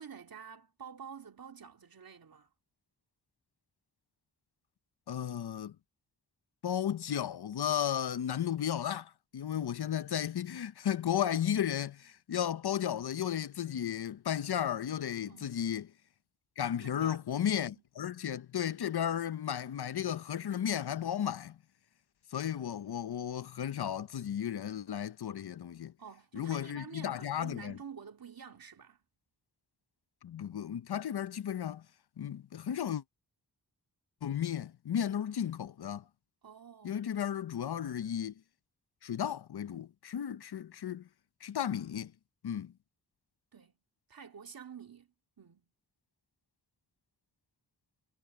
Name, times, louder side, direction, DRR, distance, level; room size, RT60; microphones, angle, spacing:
voice 1, 0.0-2.5 15.3-15.6 16.8-17.3 26.0-29.0 36.4-37.0 43.5-43.7 44.1-45.7, right 7 dB, 60° right, 2.2 m, -49 dB
voice 2, 5.1-5.8 6.6-15.9 16.6-21.6 22.3-25.9 26.3-27.8 30.2-31.8 32.2-33.0 34.2-36.0 36.8-38.3 39.0-41.1 41.4-42.1 42.4-42.7, left 9 dB, 75° left, 0.7 m, -34 dB
wide cardioid pair, 110°, 39 cm